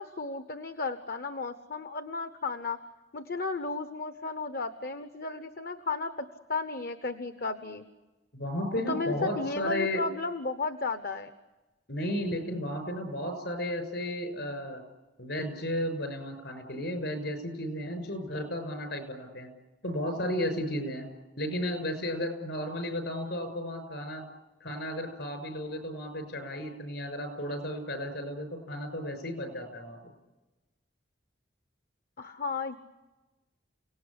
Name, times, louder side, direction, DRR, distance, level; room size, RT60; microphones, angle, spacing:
voice 1, 0.0-2.8 3.1-7.8 8.9-11.3 32.2-32.8, left 3 dB, 55° left, 10 dB, 1.1 m, -34 dB
voice 2, 8.3-10.0 11.9-14.8 15.2-19.5 19.8-21.1 21.4-24.2 24.6-30.0, left 1 dB, 70° left, 9 dB, 6.2 m, -33 dB
30.0 x 18.5 x 10.0 m, 1.1 s
head